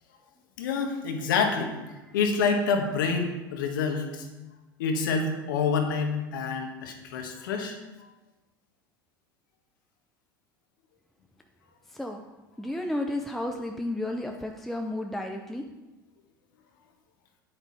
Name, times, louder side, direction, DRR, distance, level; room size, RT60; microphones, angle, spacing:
voice 1, 0.6-1.7 2.1-4.3 4.8-7.8, left 5 dB, 70° left, 4 dB, 1.5 m, -27 dB
voice 2, 12.6-15.6, left 1 dB, ahead, 3 dB, 0.7 m, -32 dB
8.9 x 8.9 x 4.2 m, 1.1 s
figure-of-eight pair, 75°, 11 cm